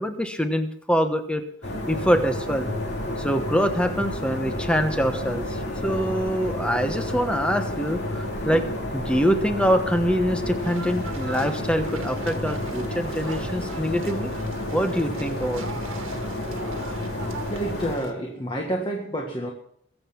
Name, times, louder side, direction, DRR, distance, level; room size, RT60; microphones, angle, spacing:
voice 1, 0.0-1.4 1.9-2.7 3.2-8.6 8.9-14.3 14.7-15.6, equal, 5° left, 7 dB, 1.1 m, -24 dB
sound 1, 1.6-18.0, left 1 dB, 50° left, 3.2 m, -30 dB
sound 2, 10.6-18.1, right 4 dB, 70° right, 1.7 m, -41 dB
voice 2, 17.3-19.5, right 1 dB, 25° left, 1 dB, 1.7 m, -29 dB
22.0 x 7.7 x 5.9 m, 0.67 s
head